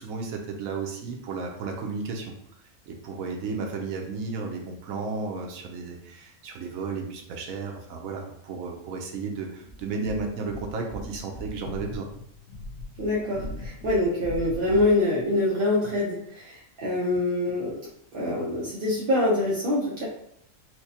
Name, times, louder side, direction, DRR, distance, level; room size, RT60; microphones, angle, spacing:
voice 1, 0.0-2.3 2.9-12.1 17.1-17.2, right 4 dB, 75° right, 2 dB, 1.0 m, -33 dB
sound 1, 9.6-15.0, left 1 dB, 90° left, 1.2 m, -40 dB
voice 2, 13.0-17.7 18.1-20.1, left 2 dB, 50° right, -6 dB, 0.7 m, -25 dB
4.5 x 2.1 x 2.7 m, 0.73 s
omnidirectional pair, 1.5 m